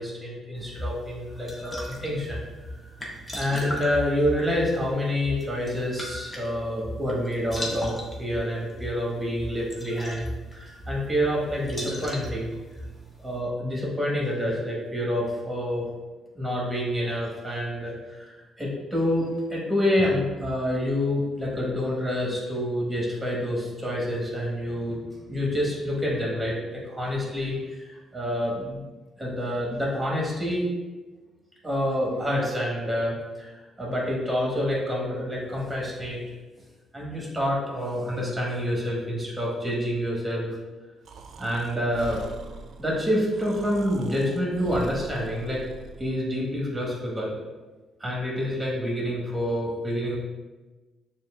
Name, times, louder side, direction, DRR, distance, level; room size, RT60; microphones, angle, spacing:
voice 1, 0.0-2.4 3.3-10.3 10.5-12.5 13.2-15.9 16.3-25.0 25.3-28.8 29.2-30.7 31.6-36.2 36.9-40.6 41.4-42.3 42.8-45.6 46.0-47.3 48.0-50.2, equal, 10° right, -4 dB, 1.5 m, -27 dB
sound 1, 0.5-13.4, equal, 15° left, 1.0 m, -37 dB
Breathing, 41.0-46.2, right 4 dB, 65° right, 0.4 m, -43 dB
6.5 x 2.5 x 2.4 m, 1.2 s
cardioid pair, 90°, 0 cm